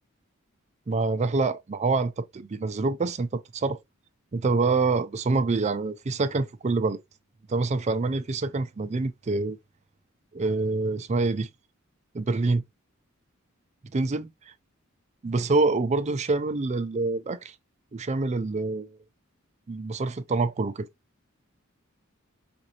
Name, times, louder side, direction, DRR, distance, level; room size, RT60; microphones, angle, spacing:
voice 1, 0.9-3.8 4.3-7.0 7.5-9.6 10.3-11.5 12.1-12.6 13.9-14.3 15.2-17.5 17.9-19.0 19.7-20.9, right 3 dB, 35° right, 0.4 m, -26 dB
4.9 x 2.6 x 2.8 m
head